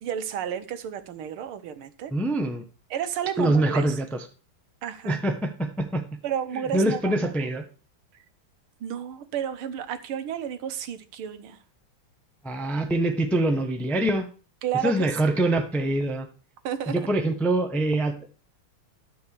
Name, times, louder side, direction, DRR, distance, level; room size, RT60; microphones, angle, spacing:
voice 1, 0.0-2.1 2.9-4.0 4.8-5.2 6.2-7.1 8.8-11.6 14.6-15.4 16.6-17.0, right 9 dB, 85° right, 1.8 m, -31 dB
voice 2, 2.1-2.6 3.4-4.1 5.0-6.0 6.7-7.6 12.4-14.3 14.8-16.3 16.9-18.3, right 1 dB, ahead, 0.4 m, -24 dB
13.0 x 4.5 x 6.8 m
omnidirectional pair, 2.3 m